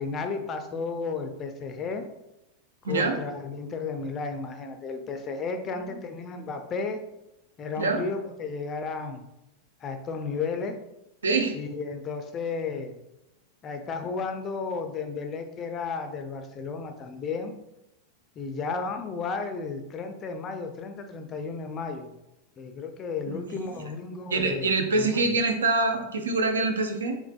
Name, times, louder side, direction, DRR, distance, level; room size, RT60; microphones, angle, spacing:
voice 1, 0.0-2.0 2.8-7.0 7.6-9.2 9.8-10.7 11.5-12.9 13.6-17.5 18.4-22.1 22.6-25.3, left 4 dB, 30° left, 7 dB, 0.4 m, -33 dB
voice 2, 2.8-3.2 7.8-8.0 11.2-11.6 23.3-23.6 24.3-27.2, right 3 dB, 70° right, 5 dB, 0.4 m, -25 dB
3.5 x 3.2 x 2.4 m, 0.89 s
figure-of-eight pair, 90°, 0 cm